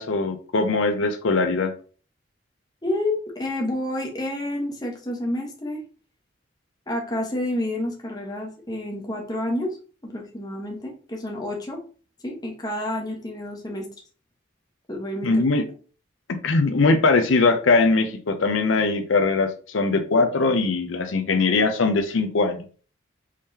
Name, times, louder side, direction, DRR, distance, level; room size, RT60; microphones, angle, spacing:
voice 1, 0.0-1.7 15.2-15.7 16.4-22.6, left 3 dB, 85° left, 7 dB, 0.6 m, -21 dB
voice 2, 2.8-5.8 6.9-9.8 10.0-11.8 12.2-13.9 14.9-15.3, left 1 dB, 20° left, 0 dB, 1.0 m, -29 dB
4.8 x 3.7 x 2.8 m, 0.39 s
head